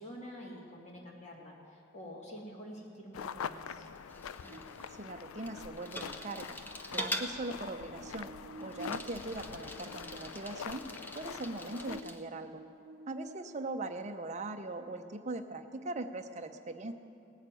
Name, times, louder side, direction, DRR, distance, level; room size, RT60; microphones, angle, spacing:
voice 1, 0.0-3.9, equal, 35° left, -2 dB, 2.1 m, -47 dB
sound 1, 3.1-12.0, left 7 dB, 90° left, 0.4 m, -44 dB
Bicycle, 3.8-12.2, equal, 10° left, 0.7 m, -44 dB
Buzz, 4.5-13.9, right 2 dB, 85° right, 0.7 m, -53 dB
voice 2, 5.0-6.6 6.9-8.3 8.6-10.8 11.1-12.6 13.1-16.9, right 2 dB, 35° right, 6 dB, 0.7 m, -40 dB
18.5 x 6.5 x 9.0 m, 2.6 s
head